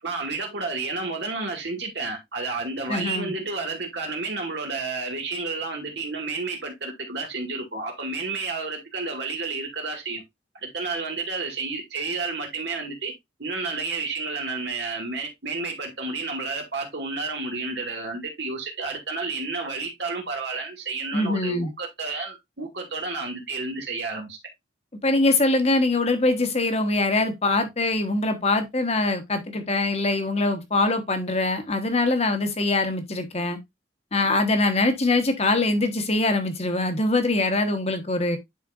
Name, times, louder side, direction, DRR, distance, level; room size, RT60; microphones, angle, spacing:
voice 1, 0.0-10.2 10.6-13.1 13.4-24.4, right 3 dB, 65° right, 2.1 m, -31 dB
voice 2, 2.9-3.3 21.1-21.7 25.0-33.6 34.1-38.4, left 2 dB, 35° left, 1.3 m, -23 dB
10.5 x 4.3 x 2.5 m
head